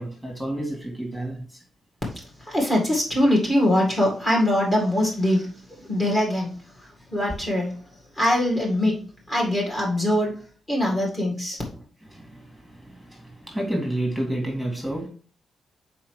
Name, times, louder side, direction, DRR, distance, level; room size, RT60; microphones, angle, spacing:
voice 1, 0.0-1.6 11.7-11.8 12.1-15.1, right 1 dB, 5° left, 0 dB, 2.2 m, -30 dB
voice 2, 2.5-5.5 5.8-6.5 7.1-7.7 8.2-9.0 9.3-10.3 10.7-11.6, left 1 dB, 25° left, -2 dB, 1.9 m, -22 dB
5.6 x 4.5 x 4.7 m, 0.40 s
wide cardioid pair, 135°, 0 cm